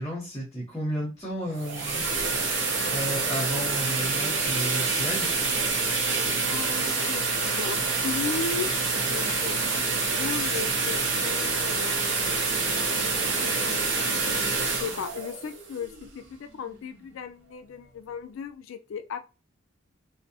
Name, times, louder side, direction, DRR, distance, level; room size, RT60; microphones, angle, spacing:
voice 1, 0.0-2.0 2.9-5.3, right 1 dB, 15° left, 0.7 m, -32 dB
sound 1, 1.4-16.3, right 4 dB, 60° right, 0.6 m, -27 dB
voice 2, 6.5-8.7 9.1-12.1 13.4-19.2, left 6 dB, 80° left, 0.3 m, -36 dB
2.6 x 2.0 x 2.7 m
head